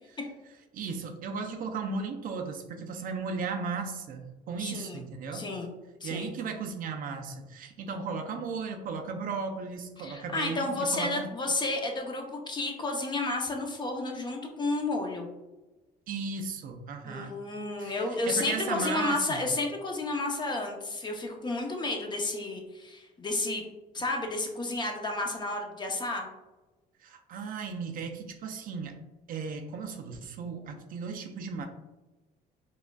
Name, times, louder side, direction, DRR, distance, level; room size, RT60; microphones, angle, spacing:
voice 1, 0.7-5.5 6.0-11.3 16.1-17.3 17.8-18.0 18.2-19.4 27.0-29.0 29.3-31.7, right 5 dB, 55° right, 5 dB, 0.5 m, -36 dB
voice 2, 4.6-5.0 5.3-5.7 6.0-6.3 10.0-15.3 17.0-23.7 23.9-26.3, left 2 dB, 25° left, 2 dB, 0.7 m, -31 dB
4.8 x 2.4 x 2.3 m, 1.1 s
cardioid pair, 110°, 17 cm